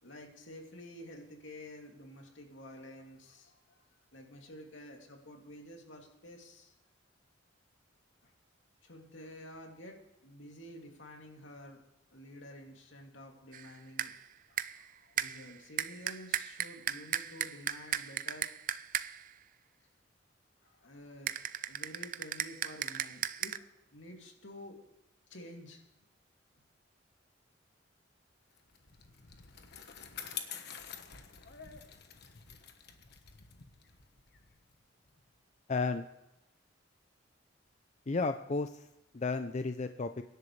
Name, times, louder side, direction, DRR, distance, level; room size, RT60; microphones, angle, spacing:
voice 1, 0.0-3.8 4.1-6.7 8.2-8.3 8.8-11.8 12.1-14.1 14.5-18.5 20.6-21.3 21.6-24.8 25.3-25.8, left 1 dB, 75° left, 1 dB, 2.7 m, -50 dB
sound 1, 13.5-13.7 14.0-14.2 14.6-14.9 15.2-19.3 21.3-23.6, right 10 dB, 45° right, 0.5 m, -37 dB
Bicycle, 28.6-35.3, left 8 dB, 60° left, 1.3 m, -48 dB
voice 2, 35.7-36.0 38.1-38.9 39.1-40.2, left 3 dB, 40° left, 8 dB, 0.5 m, -33 dB
24.5 x 11.0 x 3.3 m, 0.94 s
head